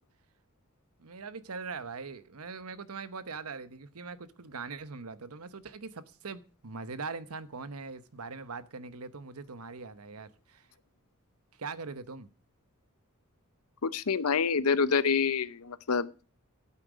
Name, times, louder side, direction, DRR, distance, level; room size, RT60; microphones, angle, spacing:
voice 1, 1.0-10.7 11.6-12.3, right 4 dB, 80° right, 1.0 m, -41 dB
voice 2, 13.8-16.1, left 5 dB, 90° left, 0.7 m, -27 dB
12.5 x 8.6 x 5.1 m
head